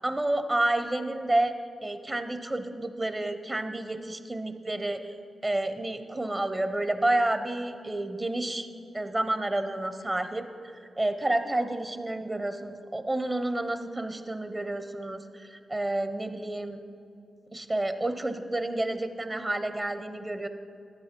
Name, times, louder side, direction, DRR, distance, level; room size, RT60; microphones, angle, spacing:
voice 1, 0.0-1.6 1.8-5.1 5.4-8.7 8.9-16.8 17.5-20.5, right 1 dB, 25° right, 8 dB, 0.8 m, -30 dB
12.0 x 8.6 x 5.2 m, 2.5 s
cardioid pair, 75°, 0 cm